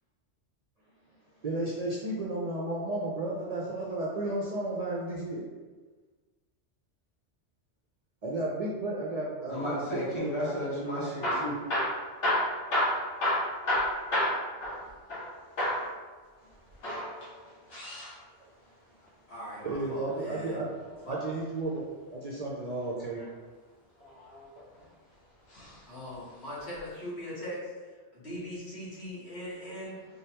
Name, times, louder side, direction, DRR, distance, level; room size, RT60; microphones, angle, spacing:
voice 1, 1.4-5.4 8.2-9.8 10.1-10.8 19.6-20.7 21.1-21.9 22.1-23.3, right 2 dB, 50° right, -5 dB, 0.5 m, -33 dB
voice 2, 9.5-11.5, equal, 25° left, -8 dB, 1.3 m, -33 dB
Hammer / Drill, 11.1-15.3 15.6-15.9 16.7-18.1 19.9-21.1 22.8-23.3 24.0-24.8 25.5-25.8 26.1-26.2 26.8-26.9, left 1 dB, 85° left, 1.5 m, -30 dB
voice 3, 19.3-20.6 21.0-21.2 25.9-30.0, left 1 dB, 65° left, -9 dB, 1.8 m, -40 dB
3.8 x 3.4 x 2.9 m, 1.4 s
omnidirectional pair, 1.2 m